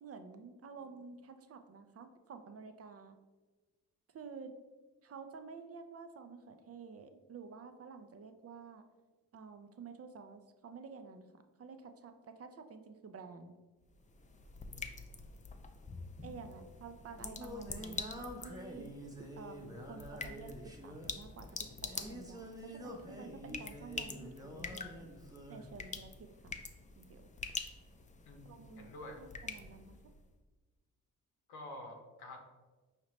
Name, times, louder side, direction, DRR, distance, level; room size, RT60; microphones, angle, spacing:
voice 1, 0.0-3.2 4.1-4.5 5.0-8.8 9.3-13.6 16.2-18.9 19.4-25.1 25.5-26.6 27.0-27.3 28.4-28.9 29.2-30.0, right 5 dB, 40° right, 8 dB, 0.5 m, -51 dB
sound 1, 13.8-30.3, left 4 dB, 20° left, 0.4 m, -47 dB
Singing, 16.7-25.7, equal, 10° right, 0.8 m, -48 dB
voice 2, 28.2-29.2 31.5-32.4, left 1 dB, 90° left, 2 dB, 0.8 m, -49 dB
4.8 x 2.9 x 3.1 m, 1.3 s
supercardioid pair, 55°, 37 cm